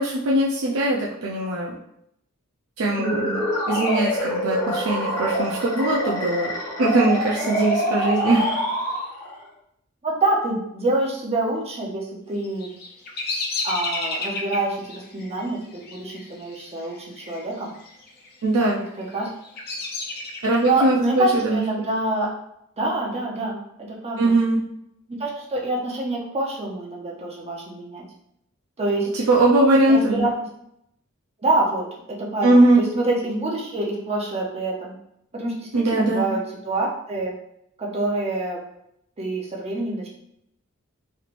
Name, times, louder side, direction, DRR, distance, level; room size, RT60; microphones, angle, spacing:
voice 1, 0.0-1.7 2.8-3.2 3.7-6.5 6.8-8.5 18.4-18.8 20.4-21.6 24.2-24.6 29.1-30.3 32.4-32.8 35.7-36.3, right 2 dB, 85° right, -4 dB, 0.5 m, -20 dB
sound 1, 2.9-9.4, equal, 20° left, 1.1 m, -25 dB
voice 2, 2.9-3.4 8.3-8.4 10.0-12.7 13.6-17.7 18.8-19.3 20.6-22.3 22.8-24.3 25.1-28.0 28.8-29.1 29.9-30.3 31.4-34.9 35.3-37.3 37.8-38.6 39.2-40.1, right 2 dB, 30° right, -3 dB, 0.6 m, -26 dB
Bird vocalization bird call bird song, 12.4-17.4 17.7-18.3 18.9-20.9, left 3 dB, 50° left, 0.6 m, -32 dB
3.2 x 3.1 x 2.4 m, 0.77 s
head